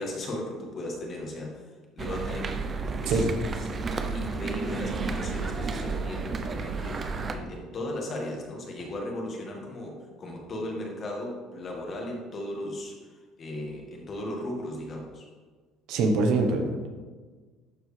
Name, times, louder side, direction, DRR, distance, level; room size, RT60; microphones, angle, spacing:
voice 1, 0.0-1.6 2.0-2.5 2.8-3.3 4.0-13.0 13.4-15.3, left 1 dB, 35° left, 0 dB, 1.7 m, -36 dB
sound 1, 2.0-7.4, right 4 dB, 25° right, 0.6 m, -32 dB
voice 2, 15.9-16.9, right 3 dB, 65° right, 5 dB, 1.0 m, -24 dB
11.5 x 4.7 x 3.3 m, 1.4 s
cardioid pair, 135°, 0 cm